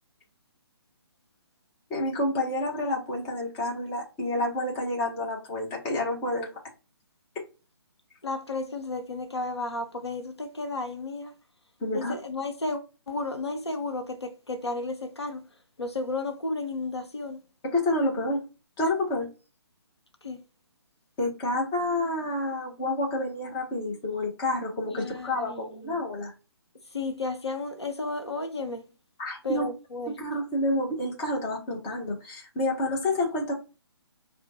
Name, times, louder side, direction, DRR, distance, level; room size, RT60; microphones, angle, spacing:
voice 1, 1.9-6.5 11.8-12.1 17.7-18.4 18.8-19.3 21.2-26.3 29.2-29.7 30.2-33.5, left 1 dB, 20° left, 0.8 m, -29 dB
voice 2, 8.2-11.3 11.9-15.5 15.8-17.4 20.2-20.4 24.9-26.1 26.9-28.8 29.4-30.2, left 3 dB, 80° left, 0.7 m, -33 dB
4.3 x 2.2 x 2.7 m
figure-of-eight pair, 140°, 14 cm